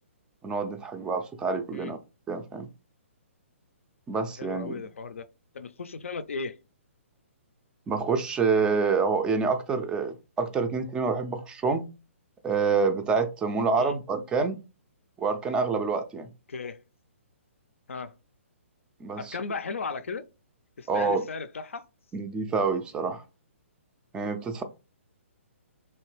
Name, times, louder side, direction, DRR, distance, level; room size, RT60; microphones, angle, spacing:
voice 1, 0.4-2.0 2.3-2.7 4.1-4.8 7.9-11.8 12.4-14.6 15.2-16.3 19.0-19.4 20.9-21.2 22.1-23.2 24.1-24.6, right 4 dB, 10° right, 0.3 m, -27 dB
voice 2, 4.4-5.3 5.5-6.6 13.8-14.0 16.5-16.8 17.9-18.1 19.2-20.2 20.8-21.9, left 4 dB, 70° left, 0.4 m, -36 dB
3.2 x 2.8 x 3.0 m
figure-of-eight pair, 130°, 7 cm